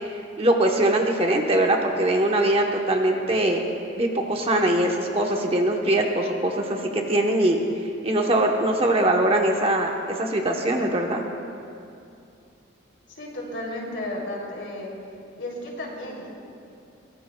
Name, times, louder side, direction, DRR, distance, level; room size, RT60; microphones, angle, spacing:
voice 1, 0.4-3.6 4.0-7.6 8.0-11.2, right 1 dB, 30° right, 1 dB, 1.0 m, -22 dB
voice 2, 13.1-14.9 15.4-16.3, left 1 dB, 60° left, -2 dB, 3.1 m, -33 dB
22.5 x 18.0 x 2.3 m, 2.5 s
head